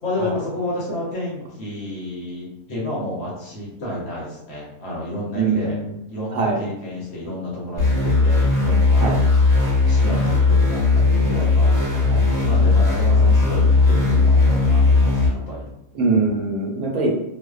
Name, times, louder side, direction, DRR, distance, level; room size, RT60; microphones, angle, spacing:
voice 1, 0.0-5.8 6.1-9.1 9.9-15.7, left 1 dB, 55° left, -5 dB, 0.8 m, -30 dB
voice 2, 5.3-5.9 6.3-6.6 9.0-9.2 11.9-12.3 15.9-17.1, right 3 dB, 75° right, -1 dB, 1.0 m, -22 dB
sound 1, 7.8-15.3, left 3 dB, 15° right, 1.1 m, -17 dB
2.6 x 2.0 x 2.3 m, 0.89 s
omnidirectional pair, 1.5 m